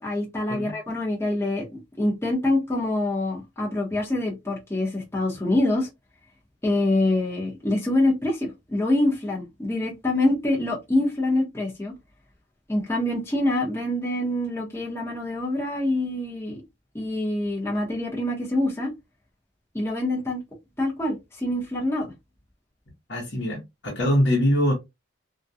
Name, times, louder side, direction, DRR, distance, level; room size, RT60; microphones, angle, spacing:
voice 1, 0.0-1.7 2.0-5.9 6.6-11.9 12.7-16.6 16.9-18.9 19.7-20.4 20.8-22.1, left 1 dB, 15° left, 0.8 m, -25 dB
voice 2, 23.1-24.7, equal, 60° left, 0.9 m, -23 dB
2.4 x 2.2 x 2.6 m
head